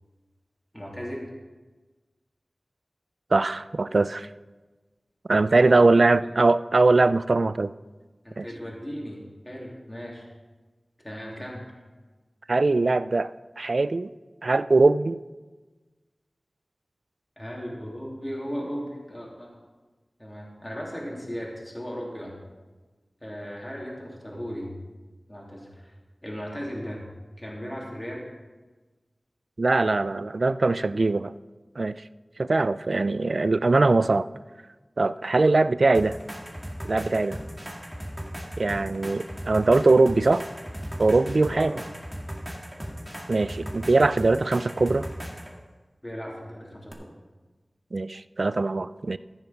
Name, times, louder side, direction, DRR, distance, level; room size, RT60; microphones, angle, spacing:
voice 1, 0.7-1.3 5.5-5.9 6.2-6.3 8.2-10.3 11.0-11.6 17.4-19.6 20.2-22.3 23.2-24.7 25.3-25.9 26.2-27.0 27.4-28.2 41.5-41.8 46.0-47.1, equal, 20° left, -3 dB, 2.9 m, -36 dB
voice 2, 3.3-4.3 5.3-7.7 8.4-8.5 12.5-13.3 13.6-14.1 14.4-15.2 29.6-31.3 31.8-31.9 32.4-34.3 35.0-36.2 36.9-37.4 38.6-40.4 41.0-41.7 43.3-45.1 47.9-49.2, right 3 dB, 65° right, 15 dB, 0.3 m, -21 dB
sound 1, 35.9-45.5 46.9-47.0, equal, 5° right, 2.0 m, -37 dB
14.0 x 7.1 x 5.9 m, 1.3 s
wide cardioid pair, 65°, 0 cm